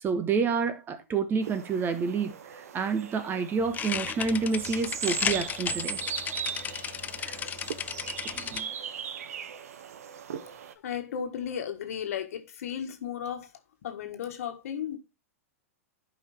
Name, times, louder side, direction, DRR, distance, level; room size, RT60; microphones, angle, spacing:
voice 1, 0.0-6.0 8.3-8.7, right 5 dB, 25° right, 1.3 m, -29 dB
sound 1, 1.4-10.7, right 8 dB, 75° right, 1.0 m, -39 dB
sound 2, 3.6-8.6, left 8 dB, 20° left, 0.4 m, -34 dB
voice 2, 10.8-13.5 13.8-15.0, left 8 dB, 70° left, 1.6 m, -34 dB
11.0 x 5.3 x 3.3 m
hypercardioid pair, 120°, 8 cm